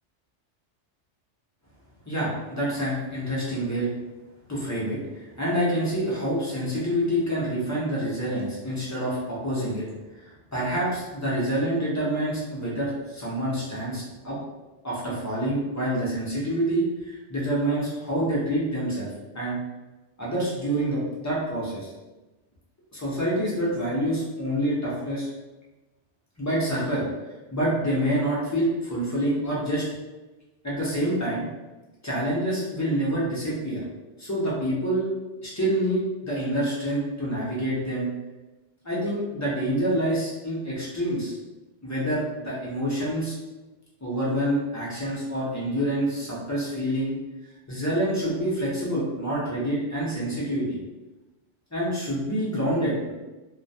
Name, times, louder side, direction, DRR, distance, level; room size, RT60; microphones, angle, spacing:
voice 1, 2.1-3.9 4.5-9.8 10.2-14.4 14.8-19.1 19.3-19.6 20.2-21.9 22.9-25.3 26.4-27.0 27.5-29.8 30.6-31.4 32.0-33.8 34.2-35.1 35.4-38.1 38.8-41.3 41.8-43.3 44.0-47.2 47.7-50.8 51.7-53.1, right 1 dB, 30° left, -7 dB, 0.3 m, -27 dB
2.2 x 2.1 x 2.6 m, 1.1 s
omnidirectional pair, 1.2 m